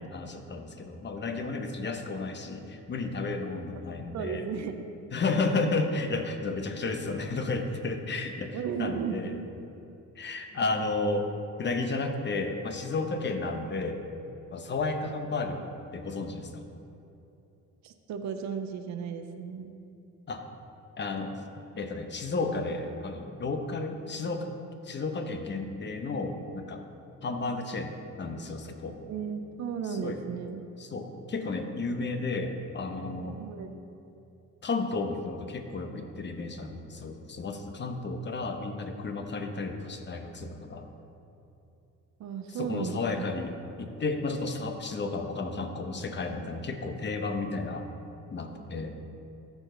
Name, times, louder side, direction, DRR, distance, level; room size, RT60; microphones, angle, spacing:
voice 1, 0.0-4.4 5.1-9.3 10.2-11.3 11.6-14.0 14.5-15.6 15.9-16.7 20.3-20.4 21.0-21.3 21.8-24.5 24.8-26.8 27.2-29.0 29.9-30.2 30.8-33.4 34.6-40.9 42.5-43.5 43.8-47.9 48.3-49.0, left 3 dB, 35° left, 6 dB, 0.9 m, -32 dB
voice 2, 4.1-4.9 8.5-9.5 17.8-19.7 29.1-30.6 33.4-33.8 42.2-43.2, right 7 dB, 65° right, 7 dB, 0.7 m, -35 dB
13.5 x 4.8 x 3.9 m, 2.8 s
cardioid pair, 90°, 30 cm